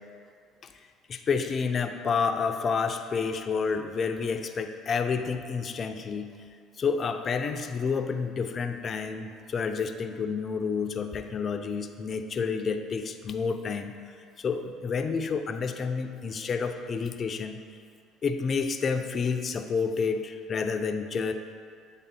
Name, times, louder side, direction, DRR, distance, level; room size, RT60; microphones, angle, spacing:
voice 1, 1.1-6.3 6.8-14.0 14.4-17.6 18.2-21.3, left 5 dB, 45° left, 7 dB, 0.5 m, -29 dB
7.9 x 3.5 x 4.3 m, 2.2 s
hypercardioid pair, 70°, 0 cm